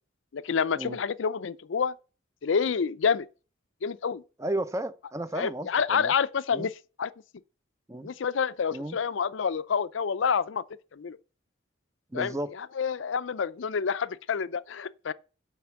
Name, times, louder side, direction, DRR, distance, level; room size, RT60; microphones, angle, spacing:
voice 1, 0.3-1.9 2.4-3.3 3.8-4.2 5.4-7.1 8.0-10.6 10.9-11.2 12.1-12.3 12.8-15.1, left 6 dB, 80° left, 0.5 m, -28 dB
voice 2, 4.4-6.1 6.5-6.7 7.9-8.1 8.7-9.0 12.1-12.5, right 1 dB, 15° right, 0.5 m, -33 dB
7.8 x 5.9 x 7.0 m
head